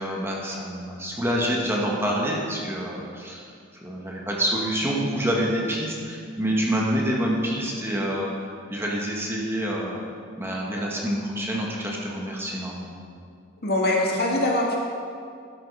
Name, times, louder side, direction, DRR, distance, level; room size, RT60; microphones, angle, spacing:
voice 1, 0.0-3.4 3.7-10.0 10.4-13.0, equal, 10° right, -3 dB, 1.3 m, -27 dB
voice 2, 13.6-14.8, left 1 dB, 50° left, -2 dB, 2.0 m, -22 dB
12.5 x 7.4 x 5.4 m, 2.3 s
head